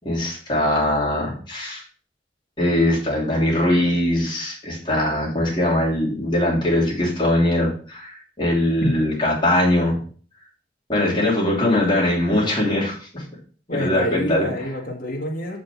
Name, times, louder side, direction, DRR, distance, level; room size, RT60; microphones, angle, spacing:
voice 1, 0.0-1.8 2.6-10.0 10.9-13.2 13.7-14.5, left 1 dB, 25° left, -4 dB, 3.1 m, -21 dB
voice 2, 13.7-15.6, left 1 dB, 50° left, -2 dB, 2.0 m, -27 dB
7.1 x 5.1 x 6.0 m, 0.42 s
head